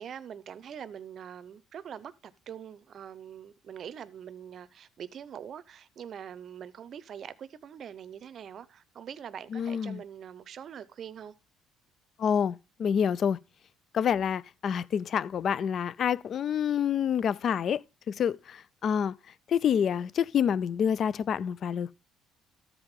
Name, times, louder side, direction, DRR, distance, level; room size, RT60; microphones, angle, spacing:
voice 1, 0.0-11.3, right 8 dB, 45° right, 0.6 m, -43 dB
voice 2, 9.5-10.0 12.2-13.4 13.9-17.8 18.1-19.1 19.5-21.9, left 8 dB, 45° left, 0.3 m, -27 dB
14.0 x 4.9 x 3.5 m
cardioid pair, 120°, 0 cm